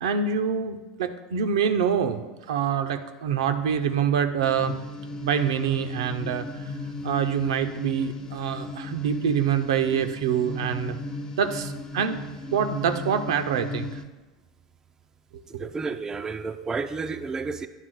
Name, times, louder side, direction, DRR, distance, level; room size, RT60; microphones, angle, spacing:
voice 1, 0.0-4.7 5.2-6.8 7.0-11.0 11.4-13.9 15.5-15.7, right 7 dB, 65° right, 8 dB, 0.6 m, -26 dB
sound 1, 4.4-14.0, left 2 dB, 25° left, 0.6 m, -35 dB
voice 2, 15.5-17.7, right 4 dB, 20° right, 8 dB, 0.4 m, -31 dB
9.9 x 3.6 x 6.4 m, 1.2 s
figure-of-eight pair, 80°, 3 cm